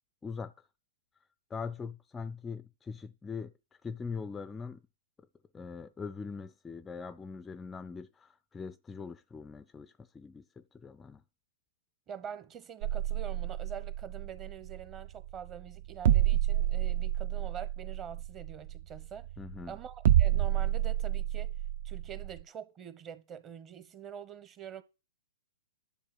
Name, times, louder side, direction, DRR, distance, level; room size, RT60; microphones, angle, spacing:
voice 1, 0.2-0.5 1.5-3.5 3.8-4.8 5.5-11.2 19.4-19.7, left 5 dB, 10° left, 0.5 m, -42 dB
voice 2, 12.1-19.3 19.7-21.6 21.8-24.8, right 8 dB, 25° right, 1.1 m, -45 dB
sound 1, 12.8-22.4, right 12 dB, 55° right, 0.9 m, -29 dB
10.5 x 7.1 x 6.1 m
hypercardioid pair, 130°, 0 cm